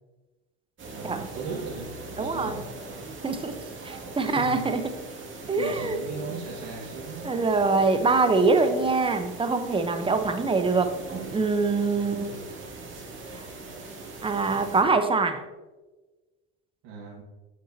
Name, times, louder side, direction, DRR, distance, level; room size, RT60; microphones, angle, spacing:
sound 1, 0.8-14.8, right 3 dB, 35° right, 2.2 m, -40 dB
voice 1, 0.9-2.7 4.2-4.6 5.3-7.4 12.0-12.5 16.8-17.2, right 4 dB, 65° right, -4 dB, 1.7 m, -38 dB
voice 2, 2.2-2.6 3.2-3.6 3.8-4.8 5.5-6.0 7.2-11.0 11.3-12.3 13.3-13.4 14.2-15.4, right 3 dB, 15° right, 8 dB, 0.8 m, -24 dB
8.4 x 6.1 x 2.8 m, 1.2 s
hypercardioid pair, 90°, 34 cm